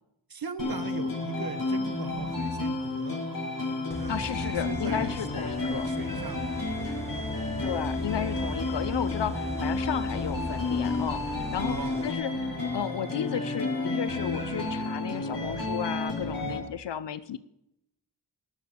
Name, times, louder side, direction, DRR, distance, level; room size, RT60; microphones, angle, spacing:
voice 1, 0.3-3.2 4.0-7.7 11.6-12.1 16.4-16.6, right 6 dB, 55° right, 13 dB, 1.1 m, -40 dB
sound 1, 0.6-16.6, left 2 dB, 50° left, 5.9 m, -31 dB
sound 2, 3.9-12.1, left 1 dB, 5° left, 0.9 m, -38 dB
voice 2, 4.1-5.9 7.6-17.4, left 9 dB, 70° left, 15 dB, 0.6 m, -33 dB
18.5 x 6.9 x 6.3 m, 0.82 s
wide cardioid pair, 105°, 44 cm